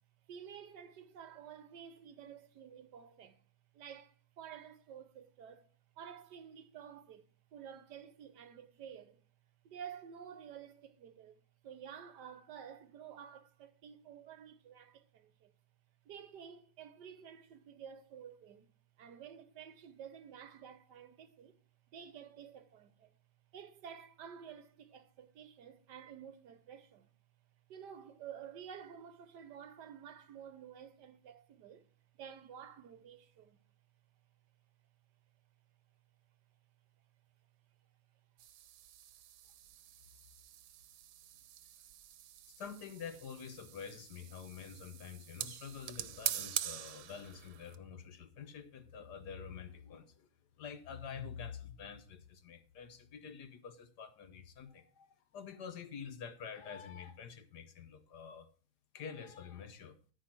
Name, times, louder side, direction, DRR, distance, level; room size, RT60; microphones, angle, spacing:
voice 1, 0.3-3.4 3.7-5.7 6.0-9.2 9.6-15.5 16.0-18.7 19.0-21.6 21.9-23.2 23.5-27.1 27.7-31.8 32.2-33.6, right 8 dB, 65° right, 1.3 m, -51 dB
sound 1, 38.4-47.8, right 12 dB, 85° right, 1.5 m, -44 dB
voice 2, 42.6-50.3 50.6-58.5 58.9-60.0, left 7 dB, 65° left, 1.3 m, -47 dB
14.0 x 5.0 x 5.9 m
omnidirectional pair, 2.1 m